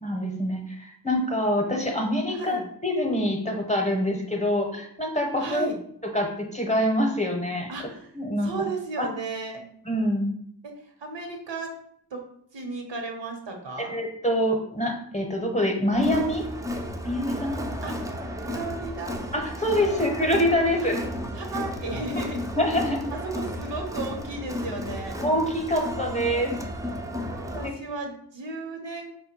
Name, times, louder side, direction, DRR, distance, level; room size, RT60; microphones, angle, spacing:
voice 1, 0.0-5.7 6.0-7.7 8.1-8.5 9.0-9.1 9.9-10.3 13.9-16.4 17.0-17.6 19.3-21.0 22.6-23.0 25.2-26.5 27.6-27.7, equal, 15° left, 2 dB, 0.8 m, -25 dB
voice 2, 2.3-2.6 5.4-5.8 7.7-8.1 8.4-9.6 10.6-10.7 11.0-11.7 12.1-12.2 12.5-13.9 17.8-17.9 18.4-19.2 19.9-20.0 21.3-22.4 23.1-25.2 27.5-29.1, right 3 dB, 85° right, 2 dB, 1.0 m, -34 dB
Crowd, 15.9-27.7, left 1 dB, 10° right, 0.4 m, -33 dB
4.8 x 2.2 x 4.4 m, 0.67 s
wide cardioid pair, 75°, 42 cm